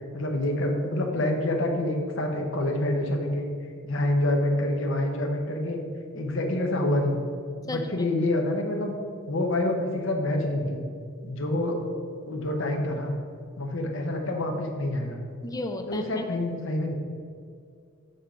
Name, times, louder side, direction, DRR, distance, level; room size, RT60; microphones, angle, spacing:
voice 1, 0.1-3.5 3.8-5.8 6.1-7.2 7.6-8.9 9.2-10.8 11.2-11.8 12.3-13.1 13.6-15.2 15.9-16.9, left 1 dB, 60° left, 3 dB, 0.9 m, -27 dB
voice 2, 7.7-8.1 15.4-16.2, left 2 dB, 15° left, 6 dB, 0.4 m, -34 dB
6.7 x 3.8 x 5.6 m, 2.3 s
head